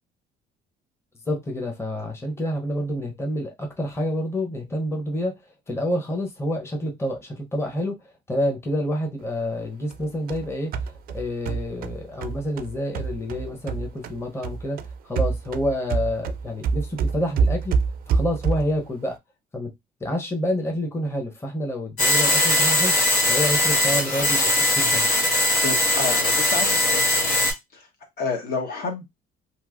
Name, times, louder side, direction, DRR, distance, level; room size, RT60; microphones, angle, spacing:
voice 1, 1.3-5.4 5.7-14.8 15.0-17.7 18.1-19.2 19.5-19.7 20.0-22.9 23.3-25.1, equal, 15° left, 0.8 m, -28 dB
sound 1, 9.9-14.2 14.4-18.8, right 5 dB, 60° right, 0.4 m, -26 dB
sound 2, 22.0-27.5, left 1 dB, 90° left, 1.6 m, -20 dB
voice 2, 25.6-27.5 28.2-29.1, left 4 dB, 60° left, 1.1 m, -29 dB
3.0 x 2.8 x 2.4 m
cardioid pair, 110°, 17 cm